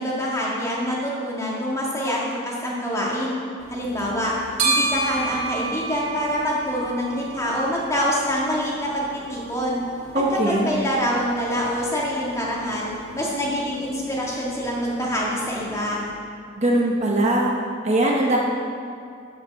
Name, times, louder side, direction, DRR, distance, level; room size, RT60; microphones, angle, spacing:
voice 1, 0.0-3.4 3.7-4.3 4.6-9.8 10.4-16.0, equal, 15° left, -4 dB, 1.8 m, -26 dB
sound 1, 3.6-16.1, right 3 dB, 75° right, 1.9 m, -33 dB
voice 2, 10.1-10.7 16.6-17.5 17.8-18.4, right 1 dB, 35° right, -1 dB, 1.0 m, -20 dB
13.5 x 5.9 x 5.4 m, 2.4 s
head